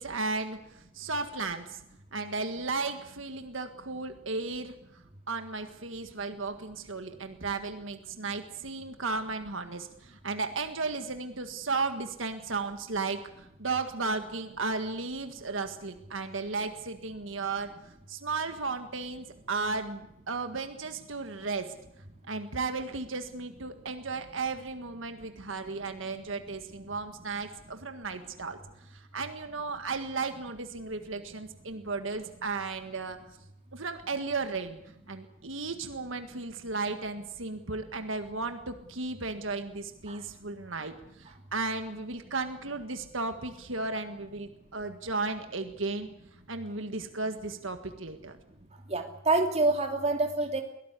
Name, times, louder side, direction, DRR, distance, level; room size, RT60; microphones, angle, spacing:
voice 1, 0.0-1.8 2.1-4.7 5.3-17.7 18.1-21.7 22.3-28.6 28.9-33.2 33.7-34.8 35.1-40.9 41.2-46.1 46.5-48.4, right 3 dB, 75° right, 7 dB, 1.7 m, -34 dB
voice 2, 48.9-50.6, right 2 dB, 30° right, 3 dB, 2.9 m, -26 dB
23.0 x 17.5 x 8.3 m, 0.81 s
head